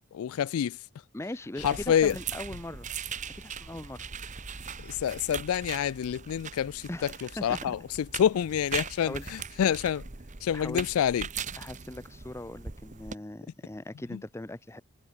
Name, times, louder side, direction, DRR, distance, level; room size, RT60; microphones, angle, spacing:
voice 1, 0.1-0.8 1.6-2.1 4.8-6.9 7.4-7.8 8.1-10.0 10.4-11.3, left 9 dB, 70° left, 0.3 m, -27 dB
voice 2, 1.1-2.9 3.3-4.1 6.9-7.8 9.0-9.3 10.5-10.9 11.6-14.8, left 1 dB, 10° left, 0.5 m, -40 dB
sound 1, 1.6-13.2, right 6 dB, 35° right, 1.2 m, -40 dB
head